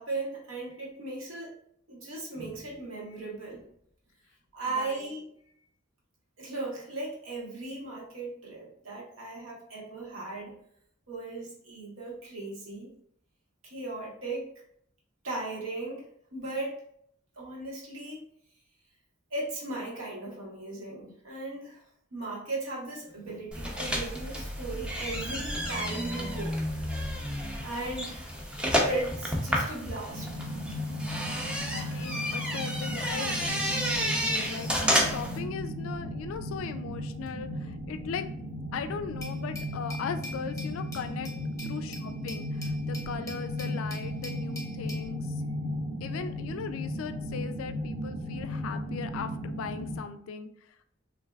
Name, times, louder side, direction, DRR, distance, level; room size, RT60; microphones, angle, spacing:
voice 1, 0.0-1.5 1.9-3.6 4.5-5.3 6.4-10.5 11.1-12.9 13.6-14.4 15.2-16.8 17.4-18.3 19.3-21.8 22.1-26.5 27.6-28.3 28.8-30.3, right 2 dB, 75° right, -3 dB, 1.0 m, -37 dB
voice 2, 4.7-5.1 31.7-34.7 35.0-38.3 38.7-41.3 41.6-45.2 46.0-50.5, left 6 dB, 90° left, 10 dB, 0.3 m, -38 dB
sound 1, 23.5-35.4, equal, 5° right, 0.4 m, -31 dB
sound 2, 30.1-50.0, equal, 40° right, 0.9 m, -35 dB
Glass, 39.2-45.1, left 2 dB, 15° left, 0.8 m, -45 dB
3.2 x 2.6 x 2.2 m, 0.68 s
head